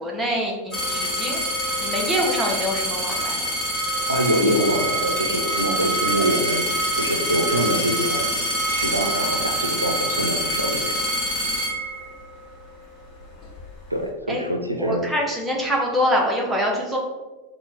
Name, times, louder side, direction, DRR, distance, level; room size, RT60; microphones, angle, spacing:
voice 1, 0.0-1.4 1.8-3.5 14.3-14.4 14.8-17.0, equal, 10° right, -1 dB, 0.7 m, -25 dB
sound 1, 0.7-12.4 13.2-13.7, right 1 dB, 25° left, 1.0 m, -25 dB
voice 2, 4.1-6.6 7.0-8.3 8.7-11.0 13.9-15.0, equal, 85° right, 3 dB, 0.4 m, -24 dB
4.3 x 2.1 x 3.4 m, 1.2 s
figure-of-eight pair, 90°, 0 cm